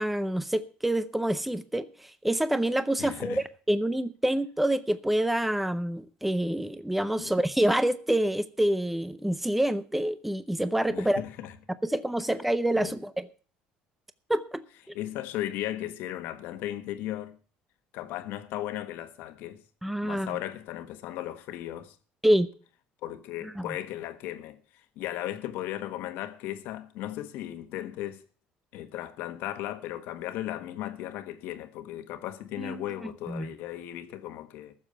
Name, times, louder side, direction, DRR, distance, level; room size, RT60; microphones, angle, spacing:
voice 1, 0.0-11.2 11.8-13.3 14.3-14.6 19.8-20.4 22.2-22.5 23.6-23.7 32.6-32.8 33.3-33.5, right 1 dB, 5° right, 0.6 m, -27 dB
voice 2, 3.0-3.4 7.2-7.4 10.9-11.5 12.7-12.9 14.9-17.4 17.9-19.6 20.0-21.9 23.0-24.6 25.0-28.2 28.7-34.7, left 13 dB, 75° left, 1.4 m, -36 dB
14.5 x 7.2 x 6.8 m
cardioid pair, 125°, 4 cm